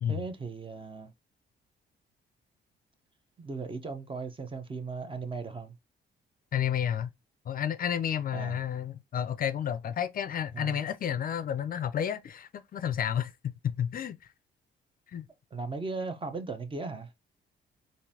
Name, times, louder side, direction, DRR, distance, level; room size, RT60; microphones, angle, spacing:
voice 1, 0.1-1.1 3.4-5.7 8.3-8.6 10.5-10.8 15.5-17.1, right 4 dB, 25° right, 0.7 m, -37 dB
voice 2, 6.5-7.1 7.5-14.2 15.1-15.3, left 9 dB, 45° left, 0.4 m, -31 dB
3.8 x 2.6 x 2.7 m
cardioid pair, 90°, 20 cm